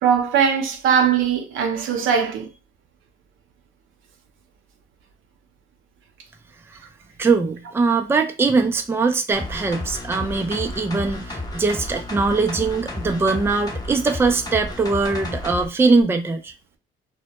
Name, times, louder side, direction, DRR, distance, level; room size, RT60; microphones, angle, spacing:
voice 1, 0.0-2.5, right 7 dB, 80° right, 0.6 m, -20 dB
voice 2, 7.2-16.5, right 4 dB, 10° right, 0.3 m, -21 dB
sound 1, 9.3-15.7 16.0-16.1, left 1 dB, 20° left, 0.8 m, -32 dB
2.1 x 2.1 x 2.8 m
cardioid pair, 90°, 20 cm